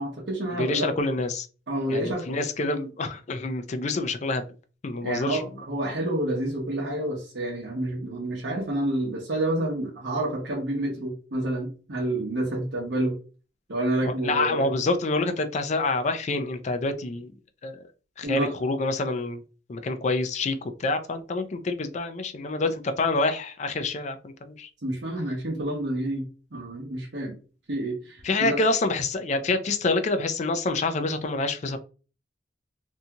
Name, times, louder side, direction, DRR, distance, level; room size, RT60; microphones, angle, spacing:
voice 1, 0.0-1.0 1.7-2.3 5.0-13.2 13.7-14.7 18.2-18.5 24.8-26.3 26.5-27.4 27.7-28.6, right 1 dB, 70° right, -2 dB, 0.8 m, -29 dB
voice 2, 0.6-1.5 1.9-4.4 4.8-5.4 14.0-17.3 17.6-17.8 18.2-19.4 19.7-24.7 28.2-31.8, left 2 dB, 40° left, 8 dB, 0.4 m, -27 dB
2.7 x 2.3 x 2.8 m, 0.36 s
head